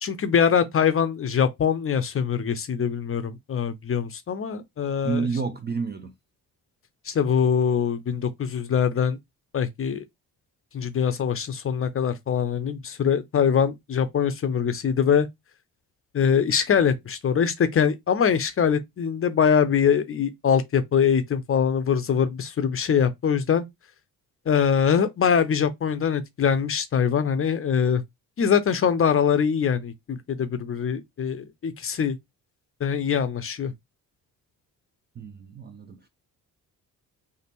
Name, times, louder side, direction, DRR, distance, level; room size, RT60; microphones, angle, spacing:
voice 1, 0.0-5.3 7.1-9.2 9.5-10.0 10.7-15.3 16.1-23.6 24.5-28.0 28.4-32.2 32.8-33.7, left 7 dB, 30° left, 0.5 m, -23 dB
voice 2, 5.0-6.1 35.2-36.1, right 5 dB, 25° right, 0.3 m, -30 dB
3.3 x 2.2 x 3.0 m
figure-of-eight pair, 40°, 49 cm